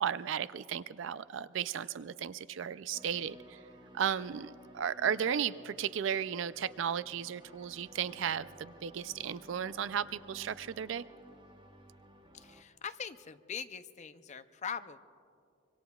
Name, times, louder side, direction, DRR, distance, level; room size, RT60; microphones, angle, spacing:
voice 1, 0.0-3.6 3.9-11.0, right 8 dB, 70° right, 15 dB, 0.4 m, -35 dB
sound 1, 2.9-12.6, right 1 dB, 25° right, 0.9 m, -55 dB
voice 2, 12.3-15.0, left 7 dB, 40° left, 11 dB, 0.5 m, -42 dB
25.0 x 24.5 x 2.3 m, 2.4 s
head